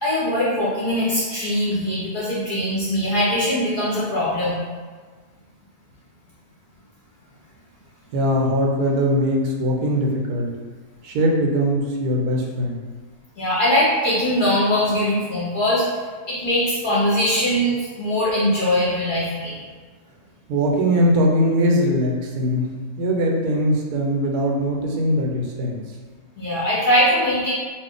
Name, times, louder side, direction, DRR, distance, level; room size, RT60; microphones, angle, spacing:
voice 1, 0.0-4.6 13.4-15.9 16.3-19.6 26.4-27.5, equal, 45° left, -8 dB, 0.7 m, -21 dB
voice 2, 8.1-10.5 11.0-12.8 20.5-25.8, equal, 90° right, -1 dB, 1.1 m, -21 dB
2.6 x 2.4 x 3.7 m, 1.5 s
omnidirectional pair, 1.6 m